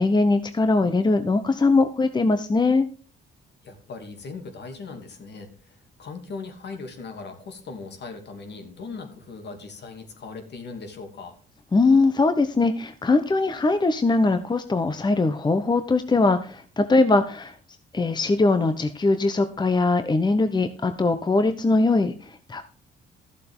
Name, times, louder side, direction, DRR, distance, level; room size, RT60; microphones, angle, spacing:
voice 1, 0.0-2.9 11.7-17.5 17.9-22.6, left 3 dB, 20° left, 10 dB, 0.9 m, -21 dB
voice 2, 3.6-11.4, left 4 dB, 60° left, 5 dB, 2.8 m, -39 dB
13.5 x 7.5 x 3.7 m, 0.41 s
cardioid pair, 90°, 20 cm